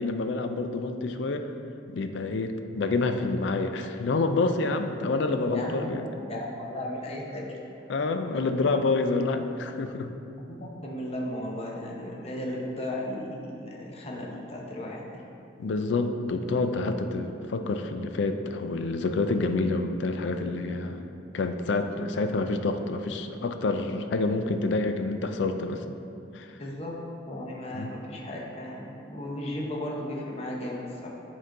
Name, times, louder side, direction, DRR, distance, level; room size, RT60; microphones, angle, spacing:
voice 1, 0.0-1.5 1.9-6.1 7.9-10.1 15.6-21.0 21.3-25.8 26.3-26.5 27.7-27.9, left 3 dB, 70° left, 7 dB, 0.4 m, -28 dB
voice 2, 5.5-7.5 10.5-15.0 26.6-26.9 27.3-31.1, left 1 dB, 35° left, -2 dB, 0.8 m, -35 dB
7.9 x 3.7 x 3.7 m, 2.7 s
head